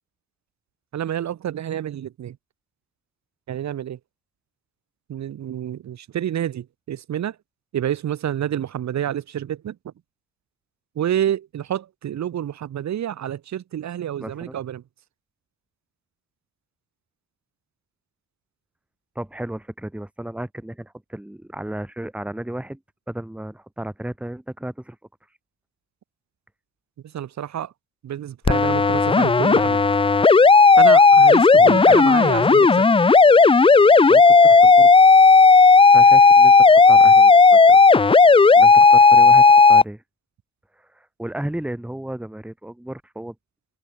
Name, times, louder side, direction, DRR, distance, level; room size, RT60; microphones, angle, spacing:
voice 1, 0.9-2.4 3.5-4.0 5.1-7.3 7.7-9.8 11.0-14.8 27.1-27.7 28.0-29.8 30.8-32.7, right 10 dB, 65° right, 2.9 m, -28 dB
voice 2, 14.2-14.6 19.2-22.8 23.1-25.0 31.6-32.0 32.2-32.5 32.9-33.0 34.1-34.9 35.9-37.8 38.2-40.0 40.8-43.3, right 1 dB, 5° right, 2.2 m, -34 dB
sound 1, 28.5-39.8, left 4 dB, 20° left, 0.6 m, -12 dB
cardioid pair, 90°, 30 cm